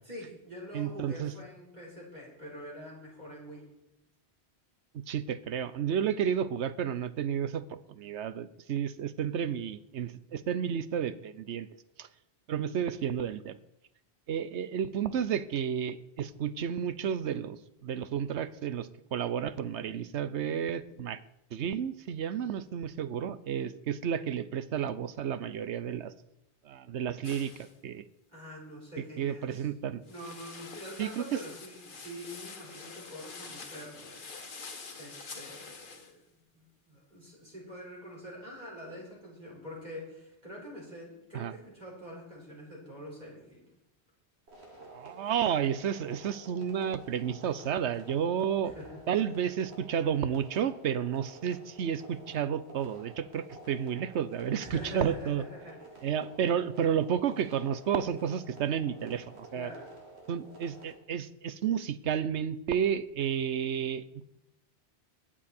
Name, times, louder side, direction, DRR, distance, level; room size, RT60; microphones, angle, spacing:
voice 1, 0.0-3.6 23.6-23.8 28.3-29.7 30.1-36.3 36.5-43.7 48.6-49.0 54.6-56.1 59.5-59.9, equal, 40° right, -4 dB, 5.2 m, -45 dB
voice 2, 0.7-1.3 5.1-11.7 12.0-12.1 12.5-13.6 14.3-21.2 21.5-26.1 26.6-28.0 29.2-30.0 31.0-31.4 41.3-41.5 44.9-48.7 49.1-55.4 56.0-59.7 60.3-64.0, right 8 dB, 90° right, 14 dB, 1.0 m, -31 dB
sound 1, 27.2-27.7 30.1-36.1, left 4 dB, 50° left, 1.3 m, -46 dB
sound 2, 44.5-60.9, right 2 dB, 70° right, 3.1 m, -51 dB
20.5 x 7.5 x 4.4 m, 0.84 s
omnidirectional pair, 1.1 m